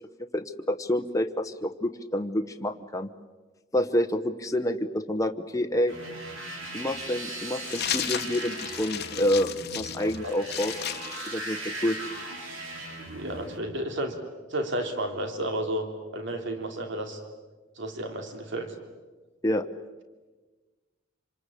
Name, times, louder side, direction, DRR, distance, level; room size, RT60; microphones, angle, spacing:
voice 1, 0.2-3.1 3.7-5.9 6.7-10.7 11.2-12.0 19.4-19.7, left 1 dB, 15° left, 6 dB, 1.0 m, -28 dB
sound 1, 5.9-13.6, right 2 dB, 85° right, 5.8 m, -38 dB
sound 2, 7.6-12.1, left 11 dB, 55° left, 1.1 m, -34 dB
voice 2, 10.2-10.7 13.1-14.2 14.5-15.9 16.1-17.2 17.8-18.7, right 1 dB, 65° right, 5 dB, 3.2 m, -32 dB
26.5 x 26.5 x 8.4 m, 1.3 s
head